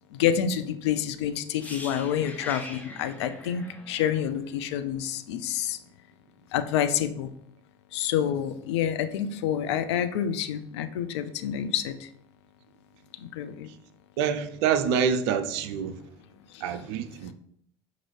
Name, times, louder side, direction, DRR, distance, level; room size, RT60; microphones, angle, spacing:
voice 1, 0.1-5.8 6.5-7.3 7.9-12.1 13.2-13.7 16.5-16.6, left 9 dB, 70° left, 0.4 m, -28 dB
sound 1, 1.6-5.5 5.7-5.9, left 1 dB, 10° left, 0.7 m, -43 dB
voice 2, 14.2-16.0 16.6-17.3, right 7 dB, 65° right, 0.4 m, -26 dB
5.4 x 2.6 x 3.1 m
hypercardioid pair, 70°, 15 cm